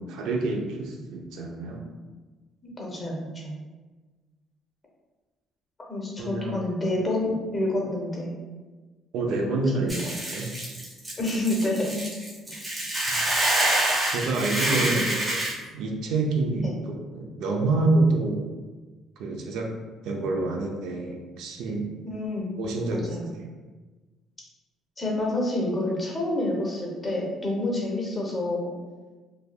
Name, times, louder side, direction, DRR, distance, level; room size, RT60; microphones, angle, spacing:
voice 1, 0.0-1.9 6.2-6.6 9.1-10.5 13.1-13.2 14.0-18.5 19.2-19.7 20.0-21.9 22.6-23.1 23.3-23.5, right 2 dB, 80° right, 1 dB, 0.4 m, -27 dB
voice 2, 2.6-3.6 5.9-8.3 9.7-9.9 11.2-12.0 12.5-12.6 14.9-15.0 16.6-16.7 22.0-22.5 22.9-23.3 25.0-28.7, left 1 dB, 20° left, -2 dB, 0.6 m, -28 dB
Hiss / Boiling, 9.9-15.5, right 1 dB, 15° right, 0.7 m, -27 dB
3.2 x 2.2 x 2.2 m, 1.3 s
cardioid pair, 145°, 0 cm